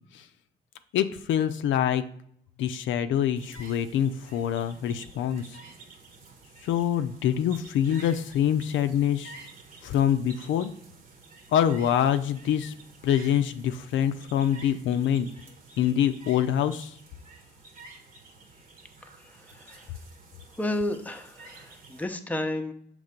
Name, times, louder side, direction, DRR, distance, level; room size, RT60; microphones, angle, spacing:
voice 1, 0.9-2.0 2.6-5.6 6.6-9.4 9.8-10.7 11.5-12.7 13.0-15.3 15.8-17.0, left 10 dB, 75° left, 10 dB, 0.5 m, -25 dB
sound 1, 3.3-22.0, right 3 dB, 45° right, 1.2 m, -50 dB
voice 2, 19.4-19.8 20.6-22.7, left 1 dB, 10° left, 6 dB, 0.7 m, -32 dB
6.6 x 3.2 x 5.1 m, 0.66 s
cardioid pair, 90°, 20 cm